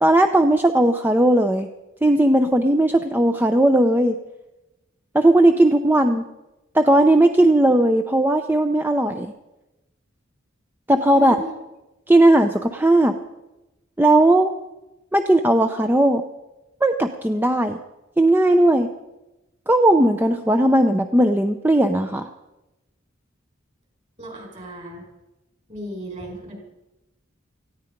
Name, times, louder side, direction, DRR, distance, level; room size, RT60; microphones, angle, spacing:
voice 1, 0.0-1.7 2.0-4.2 5.1-6.2 6.7-9.3 10.9-11.4 12.1-13.2 14.0-14.5 15.1-16.2 16.8-17.8 18.2-18.9 19.7-22.3, right 1 dB, 10° right, 7 dB, 0.6 m, -17 dB
voice 2, 11.1-11.5 24.2-25.0 25.7-26.6, right 1 dB, 35° right, 1 dB, 5.2 m, -35 dB
18.5 x 15.0 x 5.2 m, 1.0 s
head